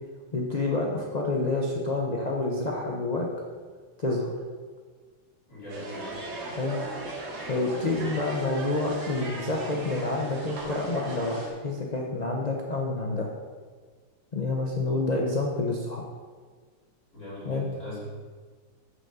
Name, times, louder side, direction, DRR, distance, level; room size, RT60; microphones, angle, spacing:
voice 1, 0.3-3.3 4.0-4.3 6.5-6.8 7.5-13.3 14.3-16.1 17.4-17.7, left 2 dB, 80° left, -1 dB, 0.3 m, -28 dB
voice 2, 5.5-6.2 17.1-18.0, left 1 dB, 40° left, -8 dB, 3.3 m, -41 dB
sound 1, 5.7-11.5, right 2 dB, 65° right, 2.2 m, -37 dB
6.4 x 6.2 x 6.7 m, 1.5 s
omnidirectional pair, 2.2 m